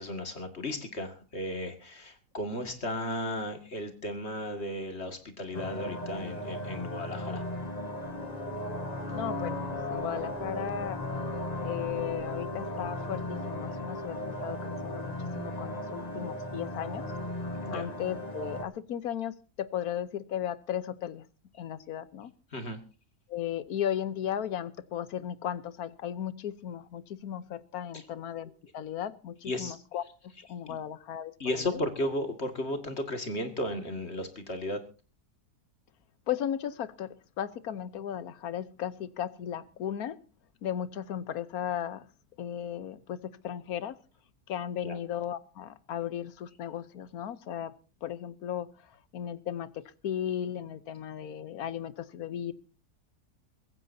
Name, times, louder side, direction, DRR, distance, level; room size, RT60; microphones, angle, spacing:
voice 1, 0.0-7.4 17.7-17.8 22.5-22.8 27.9-28.0 29.4-29.8 30.7-30.8 31.4-34.8 44.8-45.0, left 1 dB, 45° left, 2.4 m, -34 dB
sound 1, 5.5-18.6, left 1 dB, 25° left, 1.6 m, -36 dB
voice 2, 9.1-11.0 11.6-17.1 17.7-21.3 21.6-22.3 23.3-31.8 36.3-40.2 40.6-42.0 42.4-44.0 44.5-47.7 48.0-48.7 49.1-52.5, left 10 dB, 75° left, 1.4 m, -36 dB
23.5 x 15.0 x 2.7 m
omnidirectional pair, 1.6 m